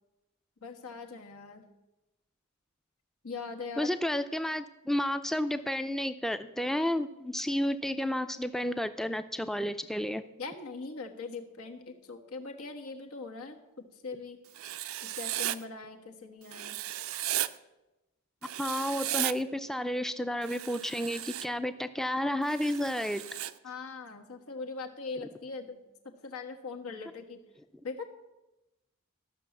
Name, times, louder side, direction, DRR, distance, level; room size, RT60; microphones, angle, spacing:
voice 1, 0.6-1.7 3.2-3.9 10.4-14.4 15.0-16.8 23.6-25.8 26.2-27.4 27.8-28.1, left 4 dB, 85° left, 3 dB, 1.5 m, -41 dB
voice 2, 3.8-10.2 18.6-23.4, left 1 dB, ahead, 11 dB, 0.4 m, -31 dB
Writing, 14.5-15.6 16.5-17.5 18.4-19.3 20.4-21.5 22.5-23.5, right 14 dB, 75° right, 0.4 m, -35 dB
13.5 x 6.2 x 7.2 m, 1.0 s
head